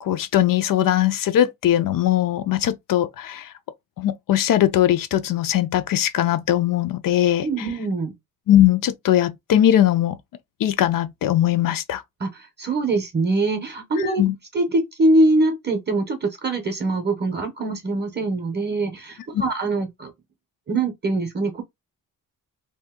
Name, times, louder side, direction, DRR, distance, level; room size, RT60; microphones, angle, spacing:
voice 1, 0.0-3.5 4.0-7.5 8.5-10.2 10.6-12.0 14.2-14.4, left 12 dB, 60° left, 0.5 m, -20 dB
voice 2, 7.4-8.1 12.2-14.2 14.5-20.1 20.7-21.6, right 2 dB, 30° right, 0.6 m, -23 dB
2.7 x 2.5 x 3.5 m
wide cardioid pair, 175°, 37 cm